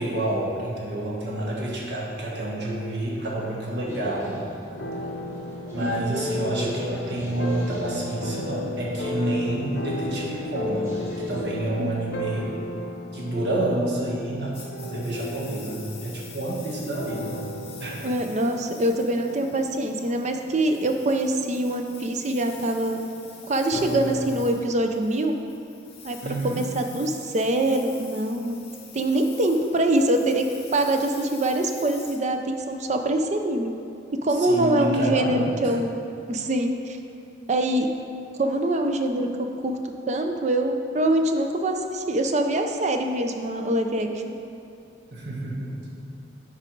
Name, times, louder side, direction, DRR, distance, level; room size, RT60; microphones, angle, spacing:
voice 1, 0.0-4.4 5.7-12.5 13.1-17.4 17.8-18.0 26.2-26.6 34.4-35.5 45.1-45.9, right 1 dB, 60° right, -4 dB, 1.5 m, -29 dB
sound 1, 3.8-11.4, right 1 dB, 15° right, 1.4 m, -39 dB
sound 2, 4.7-24.5, left 1 dB, 60° left, 0.7 m, -35 dB
voice 2, 5.8-6.2 11.8-12.1 18.0-23.0 23.5-25.4 26.0-26.2 26.4-28.6 28.9-30.4 30.7-33.7 34.2-36.0 36.3-37.0 37.5-37.9 38.3-39.3 39.6-39.8 40.1-44.3, right 1 dB, 35° right, 5 dB, 0.5 m, -24 dB
Engine, 14.5-33.0, left 6 dB, 30° left, 0.9 m, -47 dB
8.7 x 4.8 x 4.6 m, 2.5 s
head